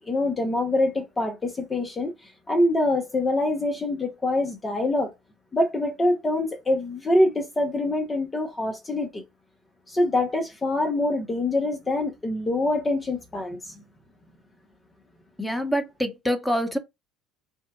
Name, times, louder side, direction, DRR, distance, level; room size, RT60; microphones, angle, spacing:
voice 1, 0.0-2.1 2.5-5.1 5.5-9.2 9.9-13.7, left 1 dB, 20° left, 0.8 m, -25 dB
voice 2, 15.4-16.8, equal, ahead, 1.1 m, -26 dB
5.3 x 2.3 x 2.4 m
hypercardioid pair, 65°, 0 cm